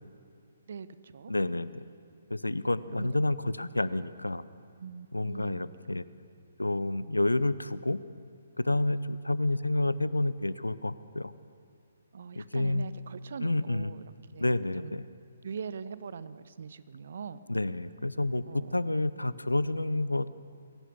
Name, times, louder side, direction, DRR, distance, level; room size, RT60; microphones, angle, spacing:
voice 1, 0.7-1.3 2.9-3.1 4.8-5.7 12.1-14.0 14.3-14.5 14.8-15.0 15.4-17.4 18.5-19.0, right 6 dB, 55° right, 15 dB, 0.9 m, -42 dB
voice 2, 1.3-1.8 2.3-4.4 5.1-6.0 6.6-8.0 8.6-11.3 12.3-12.9 13.4-13.9 14.4-15.1 17.5-18.4 18.7-20.3, left 2 dB, 80° left, 17 dB, 0.7 m, -29 dB
23.0 x 17.5 x 7.2 m, 2.4 s
figure-of-eight pair, 135°, 0 cm